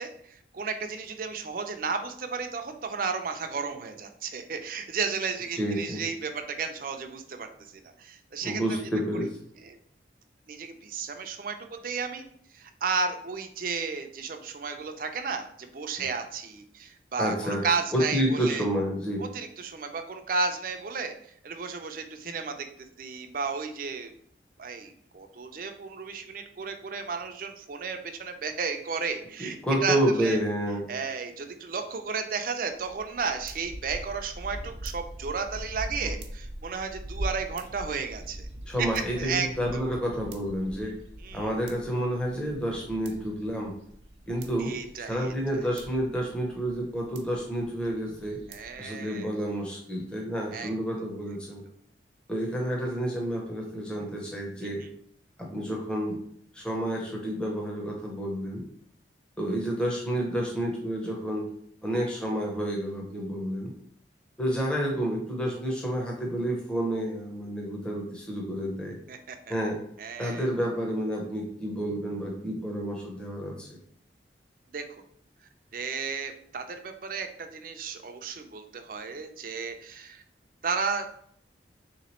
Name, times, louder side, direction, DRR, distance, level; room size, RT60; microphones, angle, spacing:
voice 1, 0.0-7.7 8.0-8.8 9.6-9.7 10.5-12.2 12.5-18.7 19.2-21.1 21.4-22.7 23.0-24.1 24.6-30.4 30.9-38.5 38.8-39.5 39.7-39.8 41.2-41.5 44.6-45.6 48.5-49.3 50.5-50.7 54.6-54.7 69.1-69.4 70.0-70.5 74.7-74.8 75.7-80.2 80.6-81.1, right 5 dB, 50° right, 6 dB, 0.4 m, -33 dB
voice 2, 5.5-6.0 8.4-9.4 17.2-17.6 17.9-19.2 29.4-30.8 36.0-36.1 38.7-40.9 41.3-43.8 44.3-44.7 45.1-48.4 48.8-51.6 52.3-54.8 55.4-56.2 56.5-58.6 59.4-61.5 61.8-63.7 64.4-69.0 69.5-69.8 70.2-73.7, equal, 5° left, -2 dB, 0.6 m, -29 dB
sound 1, 32.7-48.8, right 1 dB, 80° right, 0.7 m, -42 dB
3.4 x 3.0 x 4.2 m, 0.66 s
head